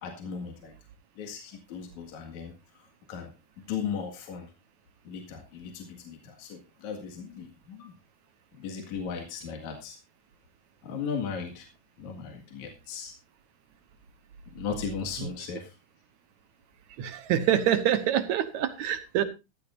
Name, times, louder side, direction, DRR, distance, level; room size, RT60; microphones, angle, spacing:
voice 1, 0.0-0.7 1.2-3.3 3.6-4.5 5.0-7.9 8.6-10.0 10.8-11.7 12.0-13.1 14.5-15.8, left 6 dB, 65° left, 3 dB, 3.3 m, -37 dB
voice 2, 17.0-19.2, right 10 dB, 70° right, 11 dB, 2.3 m, -26 dB
15.5 x 13.5 x 2.5 m, 0.26 s
omnidirectional pair, 3.6 m